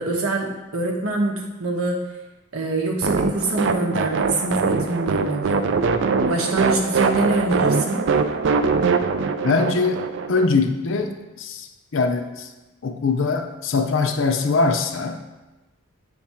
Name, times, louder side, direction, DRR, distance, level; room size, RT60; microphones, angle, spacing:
voice 1, 0.0-2.1 2.5-5.6 6.1-8.1, right 2 dB, 80° right, 0 dB, 1.1 m, -24 dB
sound 1, 3.0-10.5, right 4 dB, 55° right, 0.3 m, -22 dB
voice 2, 9.4-10.0 10.3-12.5 12.8-15.2, left 4 dB, 60° left, 6 dB, 0.5 m, -22 dB
7.8 x 3.6 x 4.4 m, 1.1 s
head